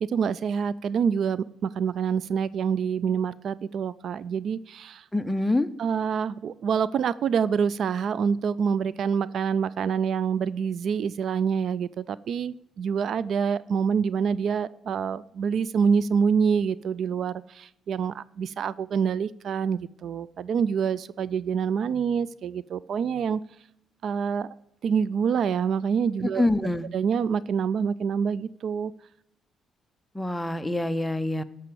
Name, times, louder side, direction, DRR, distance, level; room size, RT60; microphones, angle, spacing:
voice 1, 0.0-5.0 5.8-23.4 24.0-24.5 24.8-26.5 26.9-28.9, right 6 dB, 65° right, 19 dB, 0.4 m, -26 dB
voice 2, 5.1-5.7 26.4-26.9 30.1-31.4, left 2 dB, 10° left, 11 dB, 0.7 m, -25 dB
13.5 x 5.7 x 6.8 m, 0.80 s
cardioid pair, 90°, 0 cm